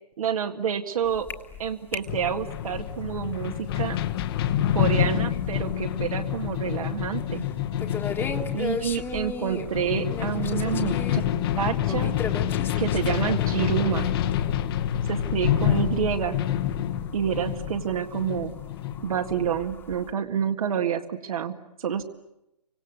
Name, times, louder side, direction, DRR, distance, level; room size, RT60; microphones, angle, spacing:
voice 1, 0.2-1.3 1.6-4.0 4.7-7.5 8.5-11.2 11.6-12.2 12.8-14.1 15.1-16.4 17.1-18.5 19.0-22.0, right 8 dB, 60° right, 5 dB, 1.9 m, -28 dB
sound 1, 1.0-20.1, left 5 dB, 10° left, 1.7 m, -39 dB
sound 2, 2.1-19.6, left 11 dB, 35° left, 1.3 m, -27 dB
Drum, 6.7-8.6, left 5 dB, 75° left, 1.8 m, -43 dB
29.0 x 25.5 x 8.2 m, 0.86 s
hypercardioid pair, 145°, 21 cm